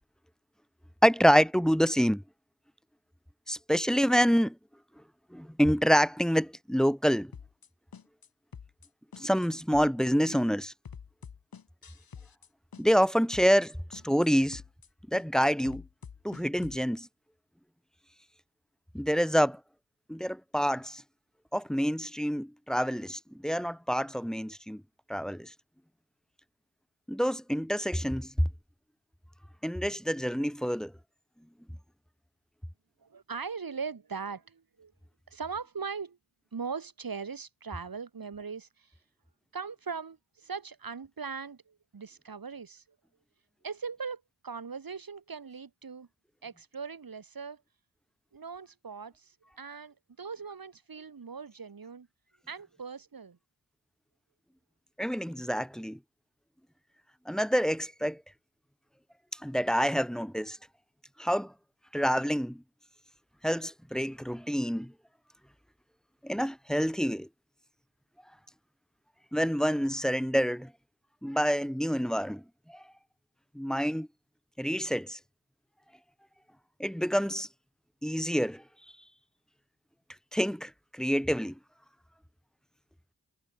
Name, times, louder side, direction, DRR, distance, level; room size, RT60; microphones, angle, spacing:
voice 1, 1.0-2.2 3.5-4.6 5.3-7.3 9.2-10.7 12.8-14.6 15.1-15.8 16.2-17.1 18.9-19.6 20.1-21.0 21.5-24.8 25.1-25.5 27.1-28.3 29.6-30.9 55.0-56.0 57.3-58.2 59.4-60.6 61.2-61.5 61.9-62.6 63.4-64.9 66.2-67.3 69.3-70.7 71.2-72.4 72.7-72.8 73.5-74.1 74.6-75.2 76.8-77.5 78.0-78.6 80.3-81.6, equal, ahead, 0.8 m, -27 dB
sound 1, 7.3-7.7 7.9-8.3 8.5-8.9 9.1-9.5 9.7-10.1 10.3-12.5 12.7-13.1 13.3-13.7 13.9-14.3 14.5-14.9 15.1-16.8, left 6 dB, 70° left, 1.3 m, -47 dB
voice 2, 33.0-34.9 35.3-36.2 36.5-38.9 39.5-42.8 43.6-46.1 46.4-47.6 48.3-52.1 52.5-53.4, right 5 dB, 70° right, 2.2 m, -40 dB
cardioid pair, 40°, 36 cm